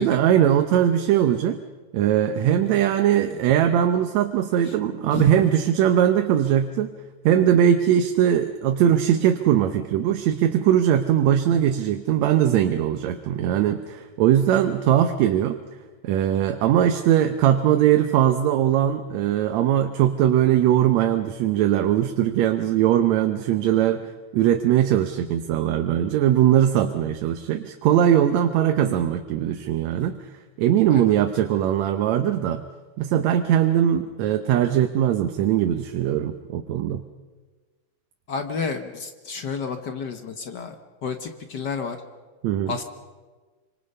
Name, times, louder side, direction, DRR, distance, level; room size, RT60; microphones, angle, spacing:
voice 1, 0.0-1.6 1.9-6.9 7.2-15.6 16.0-24.0 24.3-30.2 30.6-32.6 33.0-37.0 42.4-42.8, right 10 dB, 75° right, 7 dB, 2.1 m, -20 dB
voice 2, 5.1-5.5 30.0-30.1 30.9-31.1 38.3-42.0 42.7-42.8, left 5 dB, 55° left, 7 dB, 1.2 m, -31 dB
25.5 x 25.5 x 5.5 m, 1.3 s
omnidirectional pair, 3.3 m